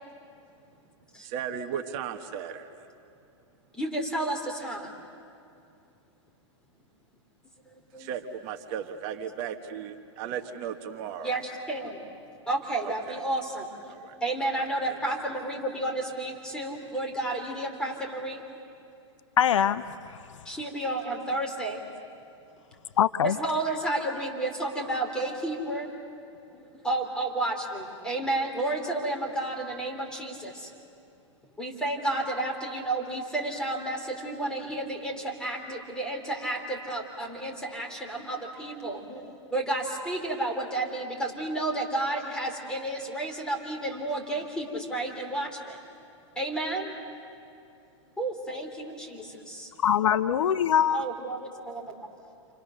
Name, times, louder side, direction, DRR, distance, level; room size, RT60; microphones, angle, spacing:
voice 1, 1.2-2.7 8.0-11.3 13.1-13.2 13.9-14.1, right 8 dB, 40° right, 1.4 m, -35 dB
voice 2, 3.7-4.9 7.9-8.1 11.2-12.0 12.5-13.9 14.2-18.4 20.5-21.9 23.2-25.9 26.5-30.7 31.6-45.8 46.4-46.9 48.2-49.7 50.9-51.4 51.7-51.9, right 2 dB, 5° left, 3.7 m, -31 dB
voice 3, 19.4-20.2 23.0-23.4 49.8-51.0, left 9 dB, 75° left, 0.9 m, -23 dB
29.5 x 26.5 x 6.6 m
hypercardioid pair, 135°, 16 cm